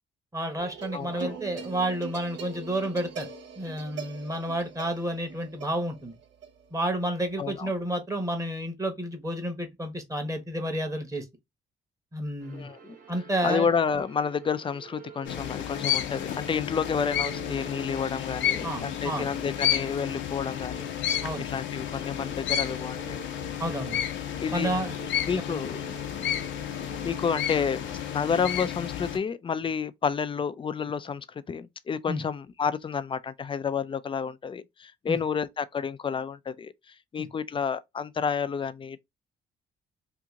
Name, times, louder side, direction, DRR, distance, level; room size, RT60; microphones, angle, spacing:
voice 1, 0.3-3.3 3.6-6.2 6.7-11.2 12.1-12.7 13.1-13.7 18.6-19.3 21.2-21.5 23.6-24.0 24.5-25.0 25.5-25.6 32.1-32.2 35.1-35.2 37.2-37.3, right 1 dB, 15° right, 1.2 m, -30 dB
sound 1, 0.6-8.0, right 5 dB, 70° right, 0.9 m, -42 dB
voice 2, 0.9-1.4 7.4-7.7 12.5-12.8 13.4-23.2 24.4-24.8 25.3-25.8 27.0-27.8 28.1-36.7 37.1-39.0, left 6 dB, 25° left, 0.4 m, -30 dB
sound 2, 12.4-28.7, right 7 dB, 40° right, 1.0 m, -47 dB
sound 3, 15.2-29.2, left 10 dB, 70° left, 0.7 m, -31 dB
2.9 x 2.5 x 3.6 m
cardioid pair, 90°, 20 cm